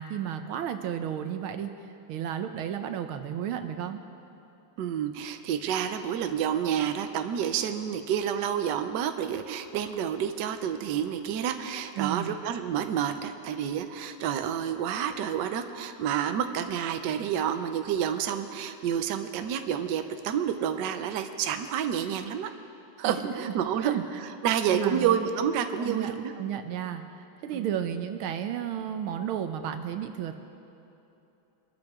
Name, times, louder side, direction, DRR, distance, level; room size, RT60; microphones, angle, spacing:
voice 1, 0.0-1.7 2.1-4.0 12.0-12.4 23.0-23.3 23.8-24.0 24.7-25.2 25.8-27.0 27.4-30.3, right 9 dB, 85° right, 7 dB, 1.6 m, -33 dB
voice 2, 4.8-22.5 23.0-26.3 27.5-27.7, right 9 dB, 65° right, 8 dB, 1.2 m, -29 dB
24.0 x 13.0 x 3.6 m, 2.9 s
omnidirectional pair, 2.3 m